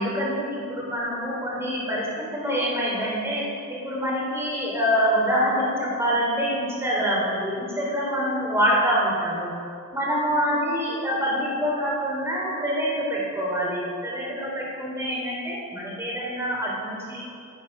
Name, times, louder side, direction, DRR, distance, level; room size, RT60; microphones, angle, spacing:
voice 1, 0.0-3.4 3.7-9.5 9.9-17.2, equal, 10° right, -4 dB, 3.6 m, -25 dB
15.5 x 8.7 x 6.2 m, 2.4 s
head